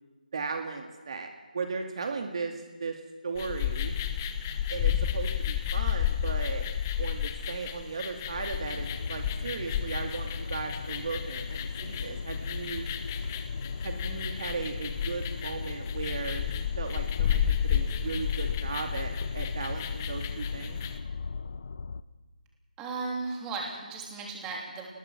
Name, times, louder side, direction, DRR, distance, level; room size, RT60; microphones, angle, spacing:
voice 1, 0.3-1.3 1.5-2.9 3.2-3.9 4.7-6.6 7.0-12.9 13.8-20.8, right 4 dB, 45° right, 4 dB, 2.3 m, -36 dB
sound 1, 3.3-21.0, left 9 dB, 20° left, 1.2 m, -32 dB
sound 2, 8.6-22.0, left 5 dB, 45° left, 0.9 m, -37 dB
voice 2, 22.8-24.9, right 3 dB, 10° right, -1 dB, 3.5 m, -35 dB
29.5 x 20.0 x 6.1 m, 1.3 s
figure-of-eight pair, 160°, 5 cm